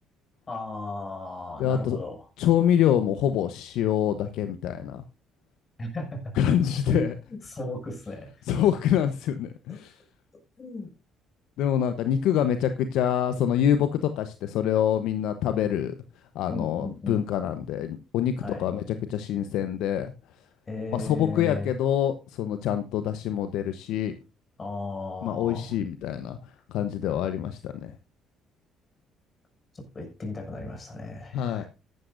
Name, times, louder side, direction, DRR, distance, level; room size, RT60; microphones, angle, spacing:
voice 1, 0.5-2.2 5.8-6.3 6.9-8.3 10.6-10.9 16.5-17.2 18.4-18.7 20.7-21.7 24.6-25.8 29.7-31.7, left 2 dB, 35° left, 6.4 m, -36 dB
voice 2, 1.6-2.0 2.4-5.0 6.3-7.1 8.5-10.0 11.6-15.9 16.3-18.3 18.6-18.8 19.1-20.1 20.9-24.1 25.2-26.4 26.7-27.9 31.3-31.6, left 10 dB, 70° left, 0.9 m, -25 dB
14.0 x 12.0 x 2.6 m
hypercardioid pair, 55°, 0 cm